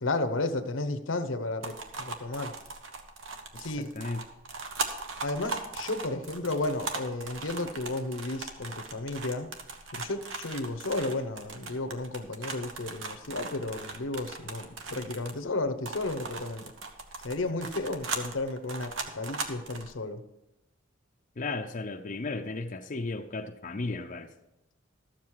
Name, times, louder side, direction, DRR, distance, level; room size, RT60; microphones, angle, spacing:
voice 1, 0.0-2.5 3.6-3.9 5.2-9.5 9.9-16.7 17.2-20.2, left 2 dB, 75° left, 9 dB, 0.9 m, -33 dB
sound 1, 1.6-15.5 15.9-19.9, right 4 dB, 70° right, 1.2 m, -38 dB
voice 2, 3.6-4.2 21.4-24.3, left 3 dB, 40° left, 3 dB, 0.6 m, -35 dB
13.0 x 7.5 x 4.7 m, 0.90 s
head